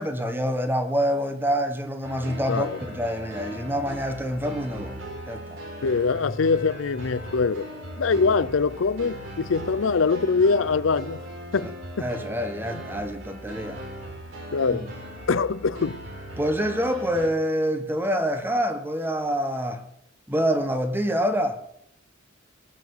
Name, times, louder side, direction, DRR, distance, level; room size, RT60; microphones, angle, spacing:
voice 1, 0.0-5.0 5.3-5.6 11.6-11.7 12.0-13.8 14.7-14.9 16.4-19.8 20.3-21.6, equal, 10° right, 1.4 m, -26 dB
sound 1, 2.0-17.3, equal, 75° right, 4.8 m, -38 dB
voice 2, 5.8-7.7 8.0-11.2 11.5-11.7 14.5-14.9 15.3-16.0, left 4 dB, 80° left, 0.6 m, -23 dB
18.5 x 7.5 x 8.0 m
head